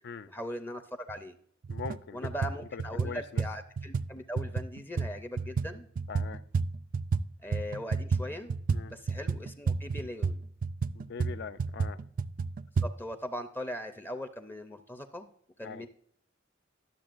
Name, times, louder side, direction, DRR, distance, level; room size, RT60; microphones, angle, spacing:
voice 1, 0.3-0.8 1.1-1.3 2.1-5.9 7.4-8.6 8.9-10.4 12.8-15.3 15.6-15.9, left 1 dB, 10° left, 0.5 m, -40 dB
sound 1, 1.1-1.2 1.6-2.0 2.2-7.2 7.5-12.9, right 4 dB, 45° right, 0.3 m, -31 dB
voice 2, 1.7-2.3 2.7-3.4 6.1-6.4 8.7-8.9 10.9-12.0 15.6-15.8, left 5 dB, 60° left, 0.4 m, -41 dB
12.0 x 7.1 x 2.5 m
head